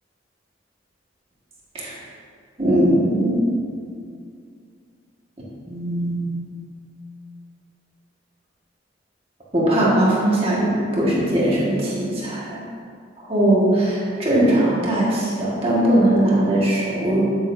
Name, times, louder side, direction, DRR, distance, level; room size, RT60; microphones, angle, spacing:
voice 1, 2.6-3.5 5.7-6.2 9.5-12.6 13.3-17.2, right 1 dB, 30° right, -6 dB, 1.6 m, -19 dB
8.9 x 8.7 x 2.6 m, 2.3 s
head